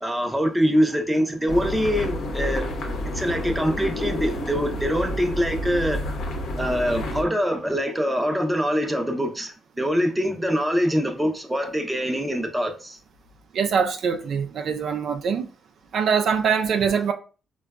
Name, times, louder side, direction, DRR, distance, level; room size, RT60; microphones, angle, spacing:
voice 1, 0.0-2.7 3.1-6.0 6.6-13.0, equal, 10° right, 0.6 m, -24 dB
sound 1, 1.5-7.2, left 1 dB, 70° left, 0.8 m, -29 dB
voice 2, 13.5-15.5 15.9-17.1, right 6 dB, 65° right, 0.3 m, -23 dB
3.8 x 2.2 x 2.3 m
cardioid pair, 90°, 0 cm